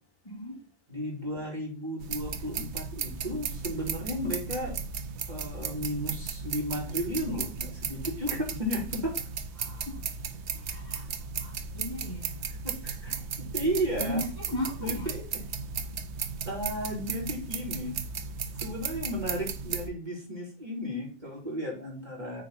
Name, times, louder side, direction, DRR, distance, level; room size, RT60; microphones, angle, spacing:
voice 1, 0.2-0.6 9.6-10.0 10.5-11.0 11.4-12.3 13.1-13.2 14.0-15.1, left 1 dB, 15° left, 3.1 m, -37 dB
voice 2, 0.9-4.8 5.3-9.1 12.6-13.1 13.5-14.2 14.8-15.2 16.4-18.0 18.6-22.4, equal, 35° right, 3.6 m, -34 dB
sound 1, 2.0-19.9, right 6 dB, 65° right, 1.0 m, -36 dB
9.0 x 4.6 x 4.1 m
omnidirectional pair, 1.3 m